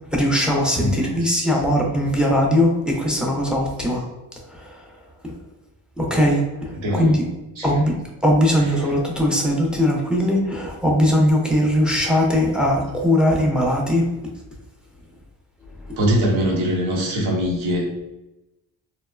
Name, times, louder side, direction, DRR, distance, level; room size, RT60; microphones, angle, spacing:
voice 1, 0.1-4.0 4.5-4.8 5.2-5.3 6.0-7.3 7.6-7.9 8.2-14.0, equal, ahead, -1 dB, 0.6 m, -20 dB
voice 2, 0.8-1.6 2.2-2.3 3.8-3.9 6.2-6.3 6.7-7.3 7.5-7.8 8.5-9.0 10.2-10.3 16.0-17.9, equal, 75° right, -3 dB, 1.0 m, -24 dB
3.0 x 2.0 x 2.3 m, 0.97 s
cardioid pair, 65°, 48 cm